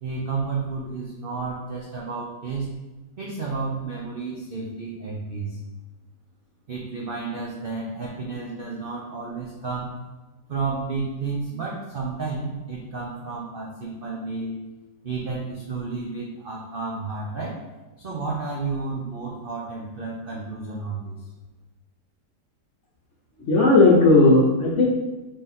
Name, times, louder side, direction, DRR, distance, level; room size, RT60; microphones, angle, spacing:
voice 1, 0.0-2.7 3.2-5.6 6.7-10.0 10.5-14.6 15.0-17.6 18.0-21.2, right 4 dB, 80° right, -4 dB, 0.4 m, -31 dB
voice 2, 23.4-24.8, left 2 dB, 55° left, -4 dB, 0.8 m, -16 dB
3.6 x 3.3 x 4.2 m, 1.1 s
omnidirectional pair, 1.9 m